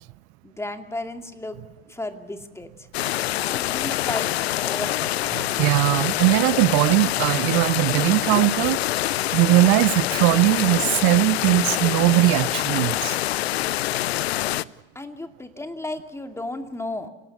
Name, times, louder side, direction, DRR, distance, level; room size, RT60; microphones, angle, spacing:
voice 1, 0.4-1.6 1.9-2.9 3.4-4.3 4.6-5.5 14.9-17.1, left 2 dB, 10° left, 2.5 m, -34 dB
sound 1, 2.9-14.6, left 15 dB, 75° left, 0.6 m, -25 dB
voice 2, 5.4-8.8 9.3-13.2, right 20 dB, 55° right, 0.6 m, -20 dB
28.5 x 17.5 x 6.8 m
hypercardioid pair, 75°, 32 cm